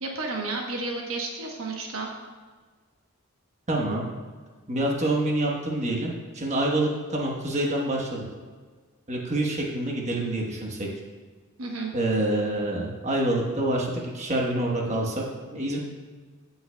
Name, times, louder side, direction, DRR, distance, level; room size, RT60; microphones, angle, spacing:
voice 1, 0.0-2.1 11.6-11.9, right 3 dB, 75° right, 1 dB, 1.1 m, -32 dB
voice 2, 3.7-4.1 4.7-8.2 9.1-10.9 11.9-15.2 15.5-15.8, right 1 dB, 35° right, -1 dB, 1.2 m, -26 dB
14.5 x 5.5 x 2.3 m, 1.5 s
head